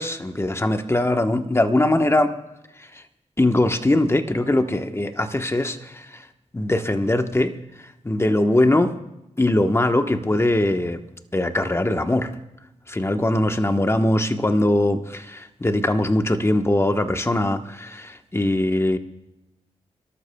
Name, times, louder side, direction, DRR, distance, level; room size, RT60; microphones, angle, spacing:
voice 1, 0.0-2.3 2.8-3.0 3.4-6.3 6.5-7.5 8.0-8.9 9.4-11.0 11.3-12.3 12.9-19.0, left 1 dB, 20° left, 7 dB, 1.1 m, -21 dB
29.5 x 12.5 x 2.3 m, 0.92 s
cardioid pair, 50°, 12 cm